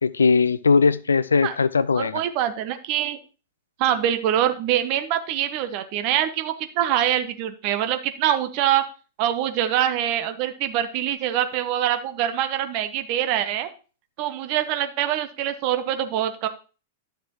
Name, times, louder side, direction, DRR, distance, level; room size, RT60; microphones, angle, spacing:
voice 1, 0.0-2.2, left 5 dB, 80° left, 18 dB, 0.4 m, -19 dB
voice 2, 2.0-3.2 3.8-8.8 9.2-13.7 14.2-16.5, right 11 dB, 45° right, 10 dB, 1.0 m, -24 dB
10.5 x 6.6 x 3.0 m, 0.35 s
figure-of-eight pair, 95°, 0 cm